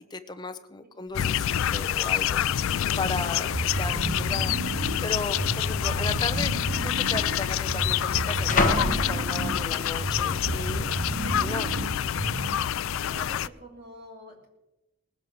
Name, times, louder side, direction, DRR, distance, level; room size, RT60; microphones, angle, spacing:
voice 1, 0.1-6.5 6.8-11.8, left 2 dB, 20° left, 8 dB, 0.7 m, -36 dB
sound 1, 1.1-13.5, left 10 dB, 75° left, 0.4 m, -27 dB
sound 2, 1.1-1.2 1.4-1.8 2.6-2.7 3.4-3.9 4.2-4.3 5.2-5.3 6.3-6.4 6.7-9.9 10.4-10.8, left 2 dB, 35° left, 1.1 m, -31 dB
sound 3, 3.5-12.7, right 2 dB, 60° right, 0.9 m, -32 dB
voice 2, 12.5-14.5, equal, 45° right, 0 dB, 3.7 m, -46 dB
19.0 x 7.5 x 6.4 m, 0.98 s
head